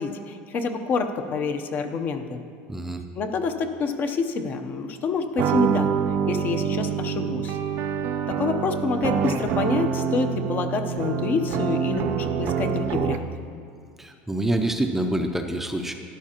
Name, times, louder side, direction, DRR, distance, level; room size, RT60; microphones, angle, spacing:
voice 1, 0.0-2.4 3.2-5.9 6.3-7.6 8.3-13.3, left 4 dB, 40° left, 6 dB, 0.8 m, -27 dB
voice 2, 2.7-3.0 14.0-15.9, right 1 dB, 5° right, 5 dB, 0.5 m, -26 dB
sound 1, 5.4-13.4, right 7 dB, 60° right, 0.5 m, -26 dB
13.5 x 11.0 x 2.9 m, 2.3 s
cardioid pair, 140°, 5 cm